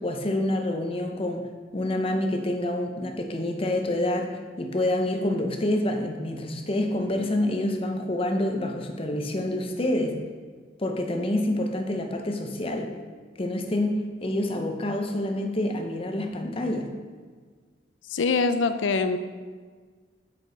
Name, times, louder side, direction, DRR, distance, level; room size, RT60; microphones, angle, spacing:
voice 1, 0.0-1.5 1.7-4.3 4.6-10.2 10.8-12.9 13.4-16.9, left 1 dB, 30° left, 4 dB, 0.7 m, -27 dB
voice 2, 18.1-19.2, left 4 dB, 90° left, 10 dB, 0.5 m, -23 dB
7.7 x 6.1 x 3.9 m, 1.5 s
head